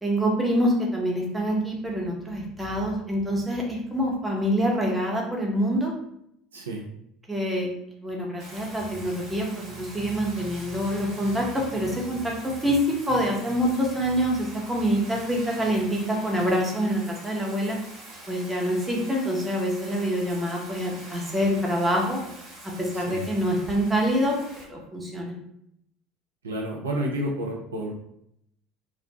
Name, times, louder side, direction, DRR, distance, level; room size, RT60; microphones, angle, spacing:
voice 1, 0.0-5.9 7.3-7.7 8.0-17.8 18.3-22.2 22.6-24.4 24.7-25.3, equal, 10° right, -2 dB, 0.7 m, -26 dB
voice 2, 6.5-6.8 22.9-23.3 26.4-27.9, right 1 dB, 80° right, -2 dB, 0.4 m, -30 dB
Bathtub (filling or washing), 8.4-24.6, right 1 dB, 45° right, 1.0 m, -45 dB
2.5 x 2.1 x 2.7 m, 0.74 s
figure-of-eight pair, 65°, 0 cm